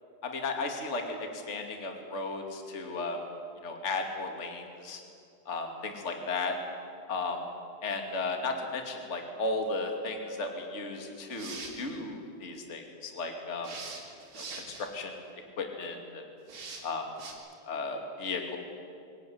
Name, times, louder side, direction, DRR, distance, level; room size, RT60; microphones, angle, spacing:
voice 1, 0.2-3.2 3.6-5.0 5.5-6.6 7.1-7.4 7.8-13.7 14.3-15.1 15.6-16.2 16.8-17.1 17.7-18.6, left 3 dB, 20° left, 3 dB, 1.9 m, -35 dB
sound 1, 11.2-11.9 13.6-14.9 16.5-16.8 17.2-17.3, right 4 dB, 45° right, 4.2 m, -42 dB
23.5 x 18.0 x 9.7 m, 2.4 s
omnidirectional pair, 5.0 m